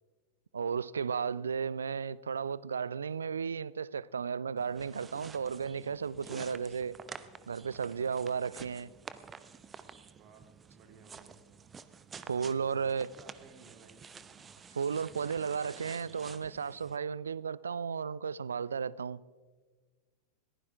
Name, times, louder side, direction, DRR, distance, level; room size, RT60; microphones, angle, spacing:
voice 1, 0.5-7.0 7.5-8.9 12.3-13.1 14.7-19.2, right 6 dB, 70° right, 0.4 m, -34 dB
sound 1, 4.6-17.0, right 6 dB, 20° right, 0.7 m, -50 dB
voice 2, 10.0-11.4 13.0-14.4, right 5 dB, 40° right, 2.2 m, -59 dB
21.5 x 15.0 x 3.5 m
figure-of-eight pair, 90°, 0 cm